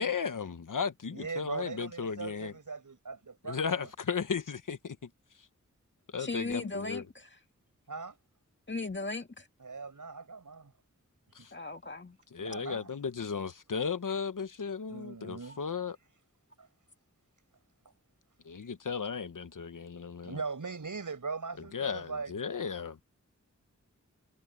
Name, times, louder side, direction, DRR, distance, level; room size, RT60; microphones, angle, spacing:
voice 1, 0.0-2.5 3.4-5.1 6.1-7.0 11.3-11.5 12.3-16.0 18.4-20.4 21.7-23.0, left 6 dB, 85° left, 1.1 m, -35 dB
voice 2, 1.1-3.9 7.9-8.2 9.6-10.7 12.4-12.9 14.9-15.6 16.6-16.7 20.2-22.3, right 4 dB, 85° right, 6.4 m, -40 dB
voice 3, 6.2-7.4 8.7-9.5 11.5-12.2 15.5-15.6, left 3 dB, 35° left, 2.0 m, -37 dB
wide cardioid pair, 75°, 31 cm